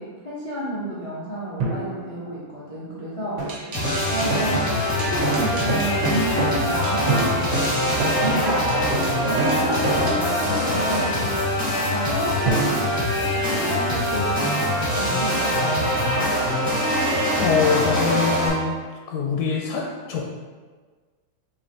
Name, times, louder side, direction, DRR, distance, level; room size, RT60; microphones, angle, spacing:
voice 1, 0.0-14.6 14.9-16.3, right 1 dB, 55° left, -8 dB, 0.3 m, -31 dB
sound 1, 1.6-3.2 7.1-9.0 12.4-14.7, right 3 dB, 80° right, 1.4 m, -31 dB
sound 2, 3.4-10.3, right 2 dB, 65° right, 1.1 m, -28 dB
sound 3, 3.7-18.5, left 1 dB, 15° left, 1.3 m, -23 dB
voice 2, 17.4-18.8 19.1-20.3, left 6 dB, 80° left, 0 dB, 1.1 m, -24 dB
5.2 x 3.0 x 2.8 m, 1.4 s
omnidirectional pair, 1.7 m